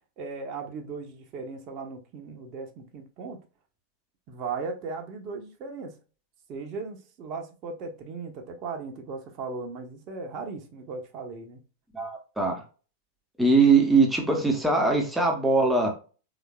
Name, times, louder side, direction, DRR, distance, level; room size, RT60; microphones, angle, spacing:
voice 1, 0.2-3.4 4.3-5.9 6.5-11.6, right 4 dB, 35° right, 1.1 m, -37 dB
voice 2, 11.9-12.6 13.4-15.9, right 3 dB, 5° right, 1.1 m, -21 dB
5.1 x 3.6 x 2.4 m
figure-of-eight pair, 90°, 0 cm